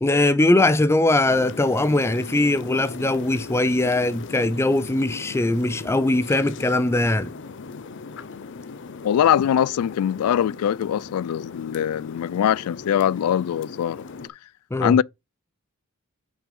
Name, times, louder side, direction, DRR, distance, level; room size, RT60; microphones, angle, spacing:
voice 1, 0.0-7.3 14.7-14.9, left 2 dB, 10° left, 0.4 m, -21 dB
sound 1, 1.2-14.3, left 4 dB, 55° left, 0.7 m, -38 dB
voice 2, 9.0-14.0 14.8-15.0, left 9 dB, 85° left, 0.3 m, -22 dB
6.1 x 4.4 x 5.3 m
head